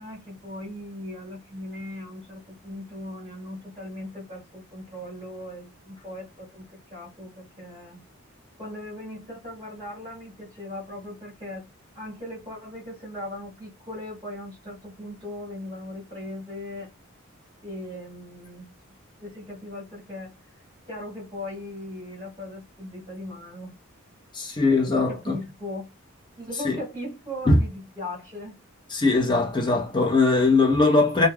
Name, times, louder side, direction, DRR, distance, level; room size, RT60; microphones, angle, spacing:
voice 1, 0.0-8.1 8.6-11.6 11.9-16.9 17.6-18.7 19.2-20.3 20.9-23.7 24.9-25.9 26.4-28.6, left 1 dB, 25° right, 1.7 m, -38 dB
voice 2, 24.3-25.4 26.6-26.8 27.5-27.6 28.9-31.3, left 3 dB, 20° left, 0.7 m, -20 dB
3.1 x 2.1 x 2.3 m
head